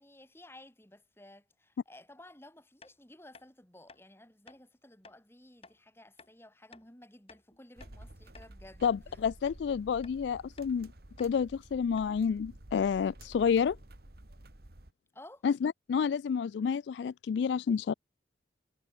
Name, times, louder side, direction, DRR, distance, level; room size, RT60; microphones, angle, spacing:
voice 1, 0.0-9.2 15.1-15.5, left 1 dB, 15° left, 3.2 m, -55 dB
sound 1, 2.8-2.9 3.3-3.5 3.9-4.0 4.5-4.6 5.0-5.2 5.6-5.8 6.2-6.3 6.7-6.9 7.3-8.0 8.3-8.5 8.8-9.0 9.5-9.6 10.0-10.2 10.6-10.7 11.2-11.3 11.6-11.7 12.0-12.2, left 4 dB, 30° left, 5.5 m, -56 dB
sound 2, 7.8-14.9, right 1 dB, 55° right, 2.0 m, -52 dB
voice 2, 8.8-10.9 11.2-13.8 15.4-17.9, left 6 dB, 70° left, 0.3 m, -29 dB
head